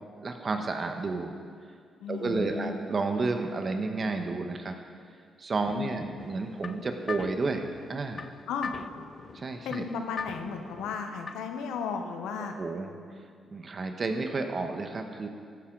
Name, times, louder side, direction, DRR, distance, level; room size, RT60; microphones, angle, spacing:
voice 1, 0.2-1.3 2.1-4.8 5.4-8.3 9.3-9.9 12.6-12.9 13.5-15.3, right 3 dB, 45° right, 5 dB, 1.2 m, -31 dB
voice 2, 2.0-2.7 5.7-6.0 8.5-8.7 9.6-12.6, left 5 dB, 85° left, 5 dB, 0.9 m, -34 dB
sound 1, 6.2-11.6, left 6 dB, 50° left, 0.3 m, -42 dB
15.0 x 8.4 x 3.9 m, 2.2 s
supercardioid pair, 65°, 0 cm